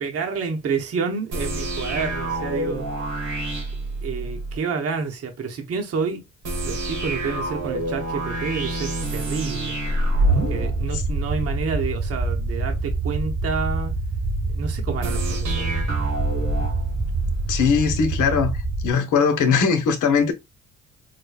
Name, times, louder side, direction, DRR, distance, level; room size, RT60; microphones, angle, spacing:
voice 1, 0.0-2.9 3.2-3.3 4.0-6.2 6.6-9.8 10.3-14.0 14.5-15.7, right 5 dB, 50° right, 0.9 m, -29 dB
sound 1, 1.3-4.6 6.4-11.7 15.0-17.7, right 2 dB, 75° right, 1.4 m, -27 dB
sound 2, 10.3-18.9, right 3 dB, 15° right, 0.4 m, -26 dB
voice 2, 17.5-18.5 18.8-20.3, left 6 dB, 75° left, 0.9 m, -20 dB
4.8 x 2.2 x 2.3 m
cardioid pair, 90°, 30 cm